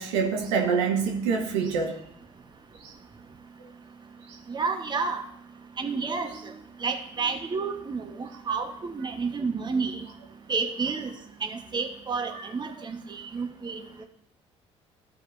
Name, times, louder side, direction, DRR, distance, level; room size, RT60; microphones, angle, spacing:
voice 1, 0.0-2.0 2.8-2.9 4.3-4.4 6.2-6.5 12.3-12.5, right 5 dB, 75° right, 2 dB, 1.1 m, -27 dB
voice 2, 4.5-5.2 5.8-6.5 6.8-10.0 10.5-11.1 11.4-14.0, right 4 dB, 30° right, 5 dB, 1.2 m, -30 dB
14.0 x 4.9 x 2.6 m, 0.69 s
figure-of-eight pair, 50°, 16 cm